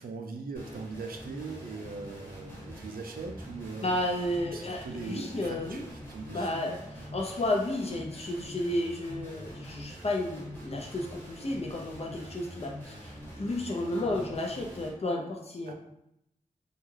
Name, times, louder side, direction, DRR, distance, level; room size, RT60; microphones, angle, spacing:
voice 1, 0.0-4.0 4.5-6.7 15.7-15.8, right 4 dB, 85° right, 4 dB, 0.4 m, -40 dB
sound 1, 0.5-14.9, equal, 15° left, 1.2 m, -45 dB
voice 2, 3.8-5.8 6.3-15.7, left 1 dB, 45° left, 0 dB, 0.5 m, -32 dB
2.3 x 2.2 x 3.1 m, 0.80 s
wide cardioid pair, 60°, 15 cm